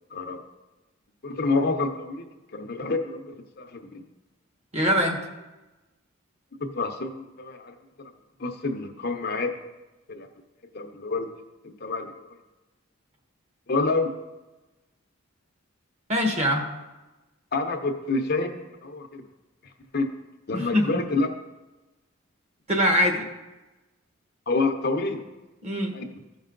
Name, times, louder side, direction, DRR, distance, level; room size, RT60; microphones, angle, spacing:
voice 1, 0.1-0.4 1.2-2.2 2.5-4.0 6.7-7.7 8.4-9.6 10.1-10.3 10.7-11.3 11.8-12.4 13.7-14.1 17.5-19.2 19.9-20.1 20.5-21.3 24.5-25.3 25.9-26.0, left 3 dB, 50° left, 4 dB, 0.8 m, -28 dB
voice 2, 4.7-5.2 16.1-16.7 20.5-20.9 22.7-23.3 25.6-25.9, equal, 35° right, 2 dB, 1.3 m, -22 dB
14.5 x 5.4 x 3.9 m, 1.1 s
head